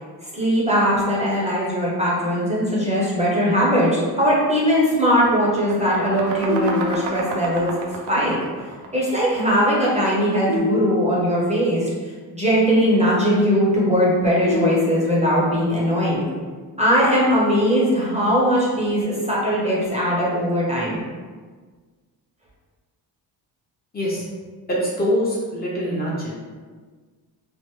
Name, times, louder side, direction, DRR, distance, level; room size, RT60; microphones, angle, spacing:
voice 1, 0.3-7.7 8.1-8.4 8.9-16.3 16.8-21.0, equal, 15° right, -6 dB, 0.7 m, -20 dB
sound 1, 4.1-4.3 4.6-9.6, right 2 dB, 85° right, 0.6 m, -32 dB
sound 2, 6.5-7.4 10.5-11.5 14.5-15.5, left 2 dB, 55° left, 1.0 m, -27 dB
voice 2, 23.9-24.3 24.7-26.3, equal, 25° left, -7 dB, 0.7 m, -24 dB
3.2 x 2.0 x 3.0 m, 1.5 s
cardioid pair, 115°, 40 cm